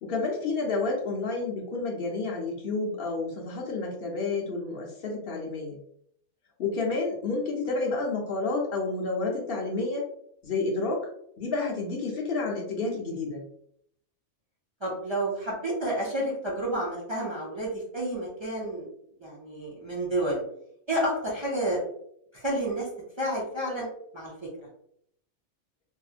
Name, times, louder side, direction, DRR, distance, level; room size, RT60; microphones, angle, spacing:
voice 1, 0.0-5.8 6.6-10.1 10.4-11.1 11.4-13.4, left 3 dB, 60° left, -1 dB, 0.7 m, -30 dB
voice 2, 14.8-18.8 19.2-20.4 20.9-21.8 22.3-22.9 23.2-23.9 24.1-24.3, right 1 dB, 35° right, -4 dB, 0.5 m, -30 dB
2.8 x 2.5 x 2.4 m, 0.71 s
omnidirectional pair, 1.2 m